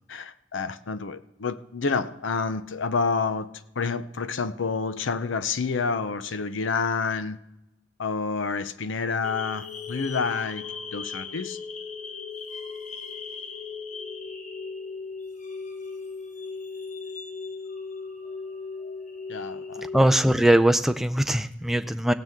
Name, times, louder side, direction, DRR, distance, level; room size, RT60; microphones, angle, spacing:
voice 1, 0.1-3.5 3.8-7.4 8.0-10.6 10.9-11.6 19.3-19.8, left 4 dB, 90° left, 0.6 m, -28 dB
sound 1, 9.2-20.1, left 4 dB, 40° left, 1.1 m, -37 dB
voice 2, 19.8-22.1, right 1 dB, ahead, 0.4 m, -21 dB
16.5 x 9.1 x 3.6 m
head